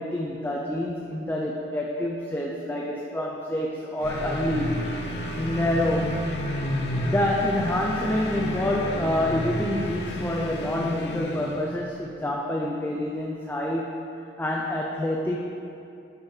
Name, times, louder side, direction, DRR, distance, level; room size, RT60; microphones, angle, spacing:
voice 1, 0.0-4.8 5.3-6.2 7.0-14.0 14.4-15.4, left 1 dB, 10° left, -2 dB, 0.5 m, -27 dB
sound 1, 4.0-11.8, left 1 dB, 60° left, 0.6 m, -33 dB
sound 2, 4.0-11.2, right 1 dB, 35° left, 1.6 m, -35 dB
9.7 x 6.3 x 4.8 m, 2.7 s
head